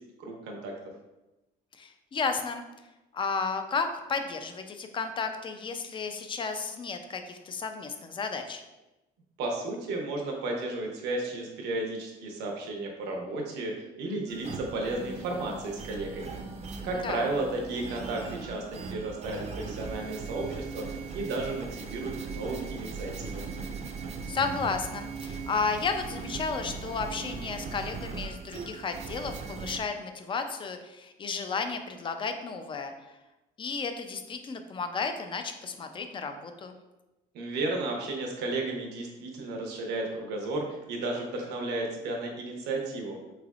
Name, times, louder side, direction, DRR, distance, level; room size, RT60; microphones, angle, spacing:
voice 1, 0.2-0.7 9.4-16.4 16.8-23.5 37.3-43.2, right 2 dB, 85° right, 1 dB, 0.8 m, -33 dB
voice 2, 1.8-2.6 3.1-8.6 17.0-17.3 24.3-32.9 33.6-36.7, left 4 dB, 30° left, 7 dB, 0.4 m, -33 dB
sound 1, 14.3-29.8, right 4 dB, 40° right, 0.5 m, -39 dB
3.8 x 3.3 x 2.4 m, 1.0 s
cardioid pair, 110°, 17 cm